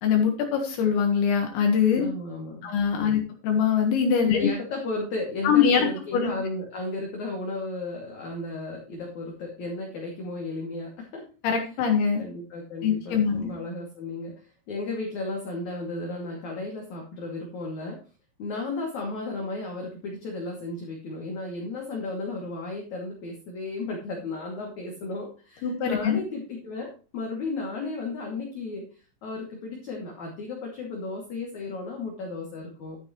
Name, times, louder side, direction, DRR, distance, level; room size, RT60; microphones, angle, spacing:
voice 1, 0.0-2.1 2.6-4.5 5.4-5.9 6.1-6.3 11.4-12.2 12.8-13.5 25.6-26.2, left 7 dB, 75° left, 3 dB, 3.8 m, -23 dB
voice 2, 2.0-3.2 4.2-11.2 12.2-14.3 14.7-18.0 18.4-28.9 29.2-33.0, left 2 dB, 45° left, -1 dB, 3.3 m, -34 dB
13.5 x 8.9 x 3.2 m, 0.35 s
omnidirectional pair, 5.5 m